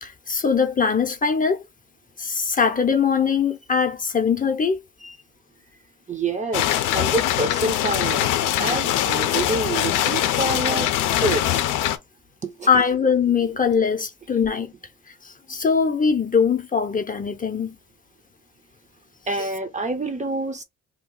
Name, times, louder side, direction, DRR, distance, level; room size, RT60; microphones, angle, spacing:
voice 1, 0.0-1.6 2.2-4.8 12.7-14.7 15.2-17.7, left 6 dB, 30° left, 0.6 m, -21 dB
voice 2, 6.1-8.3 8.6-10.9 11.2-11.4 12.4-12.7 19.3-20.6, right 2 dB, 25° right, 0.6 m, -27 dB
sound 1, 6.5-12.0, left 12 dB, 90° left, 0.5 m, -22 dB
2.8 x 2.3 x 3.6 m
cardioid pair, 90°, 30 cm